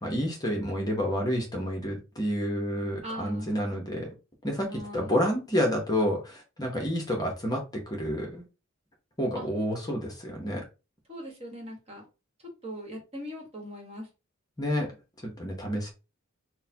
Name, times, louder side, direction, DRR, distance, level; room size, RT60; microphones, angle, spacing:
voice 1, 0.0-4.1 4.4-4.7 4.9-8.4 9.2-10.6 14.6-14.9 15.4-15.9, equal, 20° left, 0.9 m, -29 dB
voice 2, 3.0-3.7 4.7-5.1 9.4-9.5 11.1-12.1 12.4-14.1, equal, 30° right, 1.3 m, -40 dB
6.4 x 2.2 x 2.8 m
head